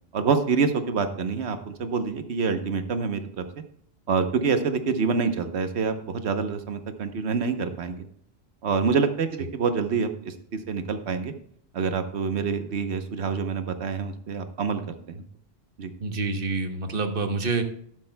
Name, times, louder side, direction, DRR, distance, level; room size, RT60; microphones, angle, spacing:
voice 1, 0.1-3.4 4.1-8.0 8.6-11.3 11.7-15.0 15.8-15.9, right 5 dB, 80° right, 8 dB, 1.2 m, -26 dB
voice 2, 16.0-17.6, right 3 dB, 60° right, 7 dB, 1.2 m, -27 dB
12.5 x 11.0 x 2.2 m, 0.66 s
omnidirectional pair, 1.1 m